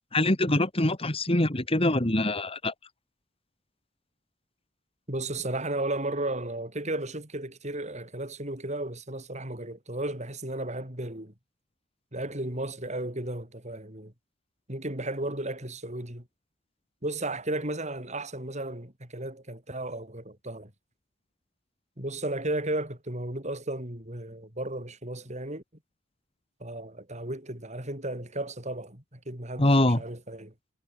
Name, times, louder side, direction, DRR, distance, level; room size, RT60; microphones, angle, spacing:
voice 1, 0.1-2.7 29.6-30.0, left 1 dB, 30° left, 2.4 m, -24 dB
voice 2, 5.1-11.3 12.1-14.1 14.7-16.3 17.0-20.7 22.0-25.6 26.6-30.5, right 1 dB, 35° right, 7.4 m, -34 dB
head